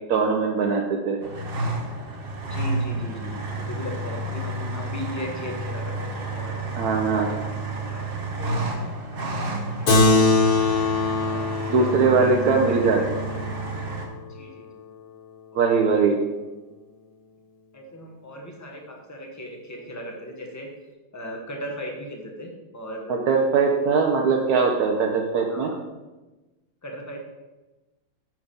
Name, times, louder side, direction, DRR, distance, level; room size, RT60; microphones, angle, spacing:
voice 1, 0.1-1.2 6.8-7.3 11.7-13.0 15.5-16.2 23.1-25.7, right 4 dB, 70° right, 1 dB, 1.1 m, -21 dB
sound 1, 1.2-14.1, right 2 dB, 45° right, 0.8 m, -31 dB
voice 2, 2.4-6.7 7.3-7.5 7.9-9.2 9.5-9.9 11.2-12.3 14.3-14.9 15.5-16.0 17.7-20.7 21.1-23.3 25.5-25.7 26.8-27.2, equal, 15° left, 1 dB, 0.7 m, -38 dB
Keyboard (musical), 9.9-14.7, left 2 dB, 40° left, 1.0 m, -23 dB
5.5 x 4.6 x 5.1 m, 1.1 s
omnidirectional pair, 1.8 m